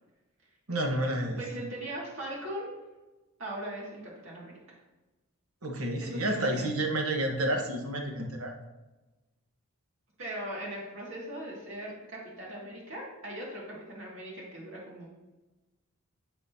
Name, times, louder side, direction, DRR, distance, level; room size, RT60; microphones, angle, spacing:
voice 1, 0.7-1.4 5.6-8.5, right 1 dB, 75° right, 1 dB, 1.3 m, -30 dB
voice 2, 1.4-2.7 3.4-4.5 6.0-6.7 10.2-15.1, right 1 dB, 60° right, -4 dB, 2.2 m, -39 dB
12.5 x 4.2 x 2.8 m, 1.1 s
head